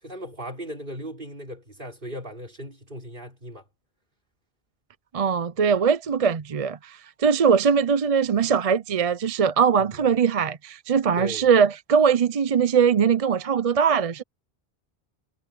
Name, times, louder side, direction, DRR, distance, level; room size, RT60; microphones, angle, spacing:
voice 1, 0.0-3.6 9.8-10.1 11.2-11.5, equal, 60° right, 4.7 m, -37 dB
voice 2, 5.1-14.2, right 6 dB, 40° right, 0.6 m, -21 dB
omnidirectional pair, 1.0 m